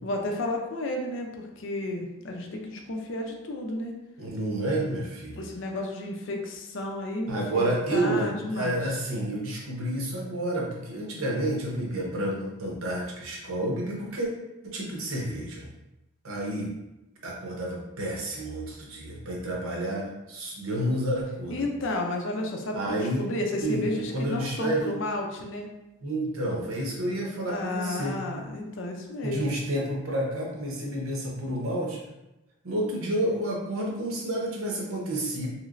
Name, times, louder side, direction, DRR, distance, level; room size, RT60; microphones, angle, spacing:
voice 1, 0.0-4.0 5.3-8.8 21.5-25.7 27.5-29.5, left 1 dB, 55° left, 2 dB, 0.5 m, -32 dB
voice 2, 4.2-5.4 7.3-14.3 14.6-15.7 16.2-16.7 17.2-21.6 22.7-23.2 23.6-24.9 26.0-28.2 29.2-32.0 32.6-35.5, right 1 dB, 75° right, -2 dB, 0.8 m, -30 dB
3.2 x 3.1 x 2.5 m, 0.96 s
head